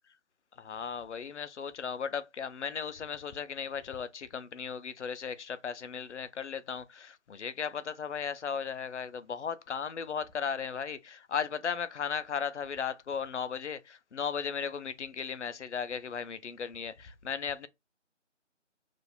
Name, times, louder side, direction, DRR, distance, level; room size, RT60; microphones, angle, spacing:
voice 1, 0.5-17.7, left 6 dB, 70° left, 0.5 m, -36 dB
2.5 x 2.1 x 2.8 m
figure-of-eight pair, 170°, 37 cm